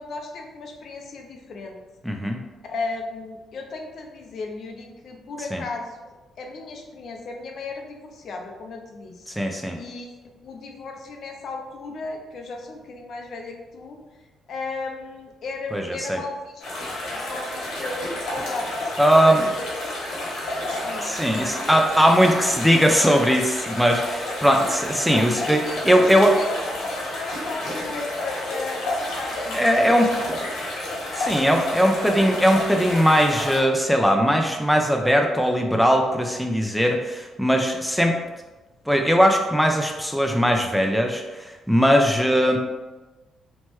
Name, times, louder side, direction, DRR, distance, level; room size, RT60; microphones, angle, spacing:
voice 1, 0.0-1.8 2.6-9.3 9.8-14.0 14.5-16.7 17.1-18.7 19.2-19.6 20.8-21.1 25.4-30.3, left 3 dB, 60° left, 2 dB, 0.5 m, -35 dB
voice 2, 2.0-2.4 5.5-5.6 9.3-9.8 15.7-16.2 19.0-19.4 21.0-26.4 29.5-30.1 31.1-38.2 38.9-42.6, equal, ahead, 2 dB, 0.3 m, -20 dB
sound 1, 16.6-33.6, left 1 dB, 80° left, 1.0 m, -30 dB
3.0 x 2.2 x 2.9 m, 1.2 s
cardioid pair, 90°, 0 cm